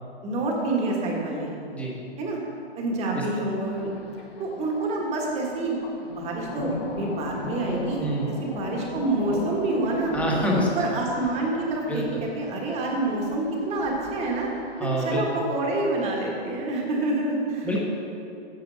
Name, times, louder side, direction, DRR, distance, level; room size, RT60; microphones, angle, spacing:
voice 1, 0.2-1.5 2.2-2.4 2.8-3.9 4.4-10.1 10.6-14.5 15.0-17.7, right 2 dB, 20° right, -1 dB, 1.4 m, -27 dB
Thunder, 3.6-14.9, left 4 dB, 55° left, 1.3 m, -37 dB
voice 2, 10.1-10.7 11.9-12.0 14.8-15.2 17.6-17.8, right 1 dB, 5° left, -3 dB, 1.2 m, -26 dB
9.0 x 6.6 x 6.2 m, 2.6 s
hypercardioid pair, 150°, 33 cm